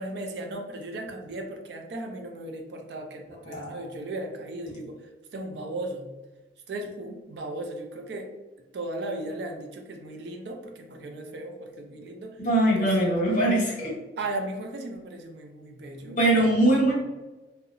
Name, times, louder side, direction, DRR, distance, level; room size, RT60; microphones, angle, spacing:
voice 1, 0.0-5.0 5.3-6.1 6.7-8.3 8.7-12.4 12.8-12.9 14.2-16.2, right 2 dB, 70° right, 3 dB, 0.4 m, -36 dB
voice 2, 3.5-3.8 12.4-13.9 16.2-16.9, right 1 dB, 45° left, -3 dB, 0.8 m, -22 dB
2.7 x 2.1 x 2.4 m, 1.1 s
head